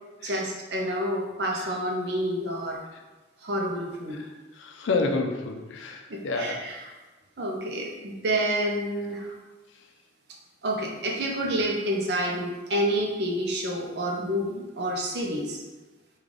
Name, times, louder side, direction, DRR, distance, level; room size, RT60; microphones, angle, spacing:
voice 1, 0.2-2.8 3.4-4.2 6.1-6.9 7.4-9.3 10.6-15.6, right 1 dB, 60° right, 0 dB, 0.6 m, -29 dB
voice 2, 4.6-6.6, left 3 dB, 80° left, 3 dB, 0.4 m, -29 dB
3.2 x 2.3 x 3.8 m, 1.2 s
head